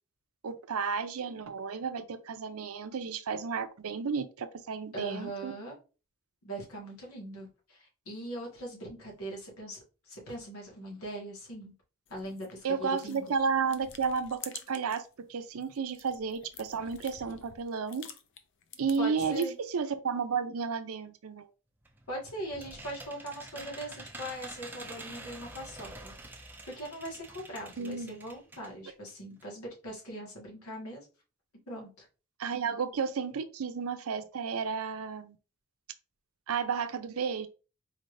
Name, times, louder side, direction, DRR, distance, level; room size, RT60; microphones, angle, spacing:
voice 1, 0.4-5.5 12.6-18.0 18.8-21.5 27.8-28.2 32.4-35.4 36.5-37.5, right 5 dB, 80° right, 0.5 m, -32 dB
voice 2, 4.9-5.8 6.4-11.7 12.1-13.3 19.0-19.5 22.1-26.1 26.6-31.0 31.7-32.1, right 1 dB, 85° left, 1.8 m, -41 dB
sound 1, 12.1-15.1 15.5-19.7, left 7 dB, 55° left, 0.5 m, -50 dB
sound 2, 21.8-28.7 29.1-29.2 29.4-29.5, right 2 dB, 10° right, 0.5 m, -47 dB
4.2 x 3.2 x 2.6 m
head